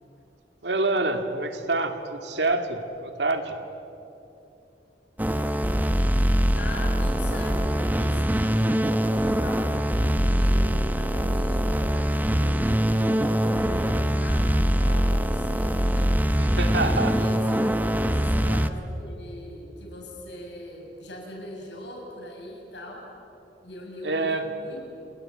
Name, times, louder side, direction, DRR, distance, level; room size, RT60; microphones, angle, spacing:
voice 1, 0.6-3.5 16.5-17.1 18.1-18.2 24.0-24.5, right 2 dB, 80° right, 6 dB, 2.4 m, -26 dB
sound 1, 5.2-18.7, equal, 10° right, 1.0 m, -23 dB
voice 2, 6.5-14.4 14.8-18.6 19.0-23.1 23.6-24.8, left 1 dB, 90° left, 0 dB, 7.9 m, -41 dB
29.0 x 21.5 x 8.8 m, 2.9 s
head